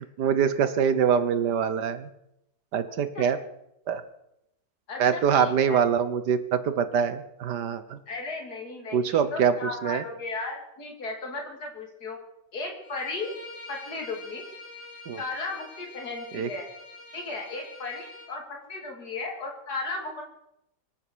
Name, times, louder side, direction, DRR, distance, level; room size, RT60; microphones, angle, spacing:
voice 1, 0.2-2.1 2.7-3.4 3.9-4.0 5.0-8.0 8.9-9.5 9.8-10.0 15.1-15.2 16.3-16.5, right 7 dB, 75° right, 12 dB, 1.7 m, -24 dB
voice 2, 2.9-3.3 4.9-5.8 8.1-12.2 12.5-13.3 13.7-14.4 15.2-16.7 17.1-20.2, left 3 dB, 65° left, 1 dB, 3.4 m, -35 dB
Bowed string instrument, 12.8-18.3, left 3 dB, 45° left, 3.9 m, -45 dB
24.5 x 8.9 x 6.3 m, 0.80 s
omnidirectional pair, 1.8 m